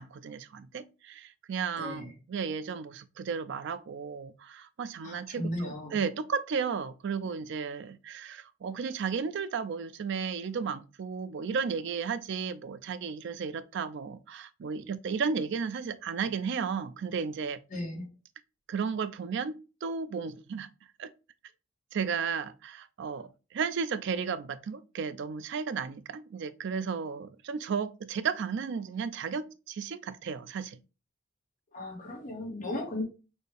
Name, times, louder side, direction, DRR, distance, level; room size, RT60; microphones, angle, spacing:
voice 1, 0.0-17.6 18.7-20.7 21.0-21.1 21.9-30.8, right 6 dB, 60° right, 0.4 m, -34 dB
voice 2, 1.8-2.1 5.0-6.0 17.7-18.1 31.7-33.0, left 1 dB, 40° left, 1.7 m, -36 dB
4.3 x 2.7 x 3.3 m
head